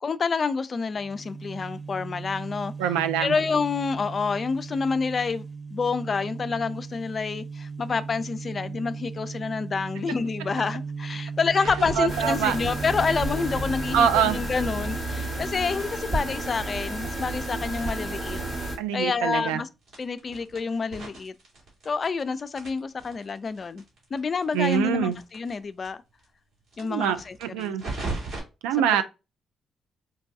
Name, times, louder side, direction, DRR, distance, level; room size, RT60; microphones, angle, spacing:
voice 1, 0.0-2.7 3.2-5.5 5.7-18.4 18.9-19.7 20.0-21.3 21.9-23.8 24.1-26.0 26.8-27.7, left 5 dB, 45° left, 0.3 m, -28 dB
sound 1, 0.9-15.5, right 5 dB, ahead, 0.9 m, -37 dB
voice 2, 2.8-3.4 12.0-12.6 13.9-14.4 18.8-19.6 24.5-25.2 26.9-27.8 28.6-29.0, right 9 dB, 90° right, 0.3 m, -24 dB
sound 2, 11.5-15.4 15.7-18.7 19.0-19.1 19.3-19.4 19.8-22.2 22.5-25.5 25.8-25.9 26.2-26.3 26.7-28.4, right 3 dB, 70° right, 2.0 m, -39 dB
sound 3, 12.1-18.8, right 1 dB, 50° right, 1.3 m, -31 dB
4.6 x 2.2 x 2.6 m
supercardioid pair, 50°, 0 cm